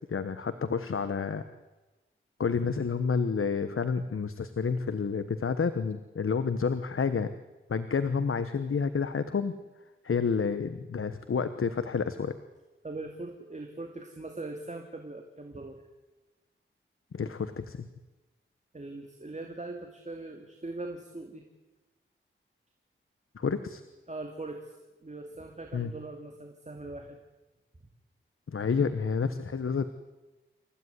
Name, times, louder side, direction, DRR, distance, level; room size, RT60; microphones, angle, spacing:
voice 1, 0.1-1.5 2.4-7.3 7.7-9.5 10.0-12.4 17.1-17.9 23.3-23.8 25.7-25.9 28.5-29.9, left 5 dB, 85° left, 11 dB, 1.2 m, -29 dB
voice 2, 12.8-15.8 18.7-21.5 24.1-24.8 25.0-27.2, right 2 dB, 35° right, 4 dB, 2.6 m, -41 dB
28.0 x 15.5 x 9.7 m, 1.1 s
wide cardioid pair, 70°, 21 cm